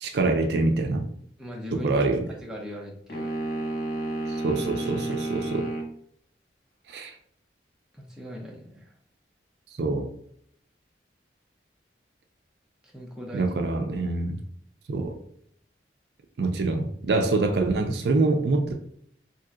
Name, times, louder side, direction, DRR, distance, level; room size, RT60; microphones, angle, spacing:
voice 1, 0.0-1.1 1.7-2.3 4.2-5.7 6.9-7.1 9.8-10.1 13.3-14.4 14.9-15.2 16.4-18.7, right 3 dB, 65° right, 5 dB, 0.4 m, -25 dB
voice 2, 1.4-2.0 2.4-3.3 7.9-8.9 12.9-13.4, equal, 5° right, -2 dB, 0.5 m, -39 dB
sound 1, 3.1-5.9, right 2 dB, 60° left, 0.6 m, -31 dB
3.2 x 2.8 x 2.4 m, 0.66 s
head